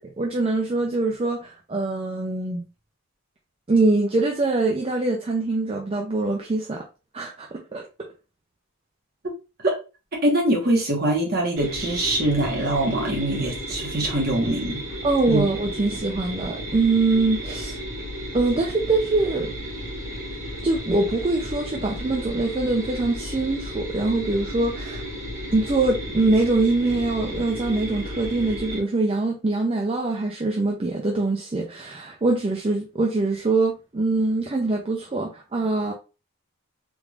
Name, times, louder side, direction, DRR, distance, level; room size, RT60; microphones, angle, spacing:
voice 1, 0.2-2.6 3.7-6.8 7.1-7.8 15.0-17.8 18.3-19.5 20.6-25.0 25.5-35.9, right 2 dB, 25° right, 0.4 m, -23 dB
voice 2, 10.1-14.8 15.3-15.5, right 1 dB, 45° right, 1.2 m, -23 dB
sound 1, 11.6-28.8, equal, 60° right, 1.7 m, -34 dB
3.6 x 3.1 x 2.4 m
head